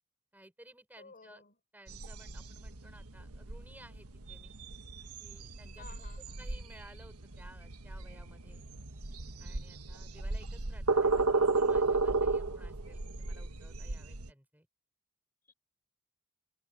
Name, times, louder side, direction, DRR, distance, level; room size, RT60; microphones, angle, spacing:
voice 1, 0.3-1.4 1.7-4.5 5.2-8.6 9.4-14.7, right 1 dB, 10° right, 6.7 m, -57 dB
voice 2, 1.0-1.6 5.8-6.4 15.5-15.6, left 5 dB, 40° left, 4.4 m, -54 dB
sound 1, 1.9-14.3, right 3 dB, 80° right, 1.5 m, -34 dB
head